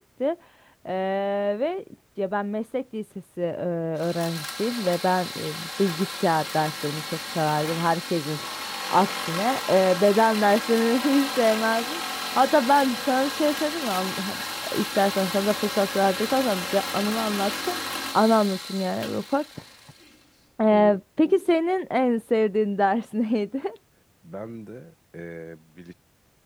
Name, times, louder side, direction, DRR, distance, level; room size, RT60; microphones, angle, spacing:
voice 1, 0.2-0.5 0.8-1.8 2.2-3.0 3.4-14.4 14.7-19.8 20.6-23.8, equal, 5° left, 0.4 m, -24 dB
sound 1, 4.0-20.1, left 1 dB, 25° left, 2.5 m, -32 dB
voice 2, 24.2-25.9, right 1 dB, 10° right, 1.1 m, -39 dB
wide cardioid pair, 65°, 0 cm